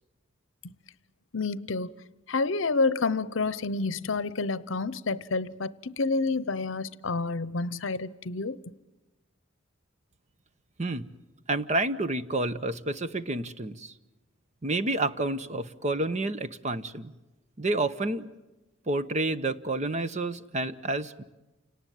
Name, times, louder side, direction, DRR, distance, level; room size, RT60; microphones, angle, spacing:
voice 1, 1.3-1.9 2.3-8.6, left 3 dB, 70° left, 0.8 m, -29 dB
voice 2, 11.5-13.9 14.6-17.1 17.6-18.3 18.9-21.2, right 2 dB, 35° right, 0.9 m, -29 dB
29.0 x 18.5 x 9.3 m
head